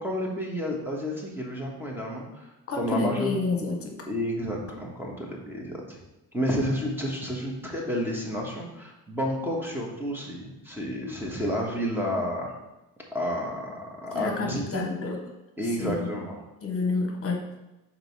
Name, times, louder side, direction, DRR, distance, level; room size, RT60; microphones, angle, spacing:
voice 1, 0.0-3.3 4.0-5.8 6.3-12.5 13.1-14.8 15.6-16.4, equal, 5° right, -2 dB, 1.4 m, -31 dB
voice 2, 2.7-4.0 14.1-15.2 15.8-16.1 16.6-17.6, left 3 dB, 40° left, 2 dB, 1.2 m, -29 dB
5.2 x 4.3 x 4.7 m, 0.99 s
cardioid pair, 105°, 36 cm